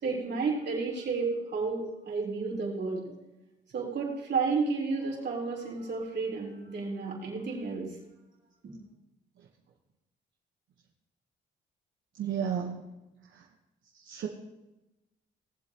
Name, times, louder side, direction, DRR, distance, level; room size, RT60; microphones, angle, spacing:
voice 1, 0.0-3.1 3.7-7.9, right 4 dB, 60° right, -3 dB, 3.7 m, -31 dB
voice 2, 12.2-12.8 14.0-14.3, right 8 dB, 75° right, 0 dB, 1.2 m, -31 dB
18.5 x 7.5 x 3.0 m, 1.0 s
cardioid pair, 85°, 20 cm